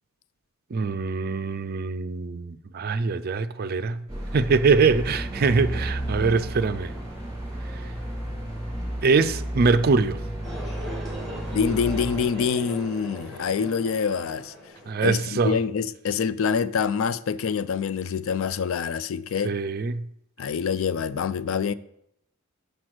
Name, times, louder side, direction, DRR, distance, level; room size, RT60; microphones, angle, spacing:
voice 1, 0.7-4.0 4.3-6.9 9.0-10.2 14.9-15.6 19.4-20.0, right 4 dB, 45° right, 0.4 m, -23 dB
sound 1, 4.1-12.3, right 1 dB, 15° right, 3.3 m, -33 dB
sound 2, 10.4-15.4, right 1 dB, ahead, 1.9 m, -40 dB
voice 2, 11.5-14.5 15.0-19.5 20.4-21.7, left 6 dB, 65° left, 0.3 m, -26 dB
6.3 x 5.3 x 6.0 m
head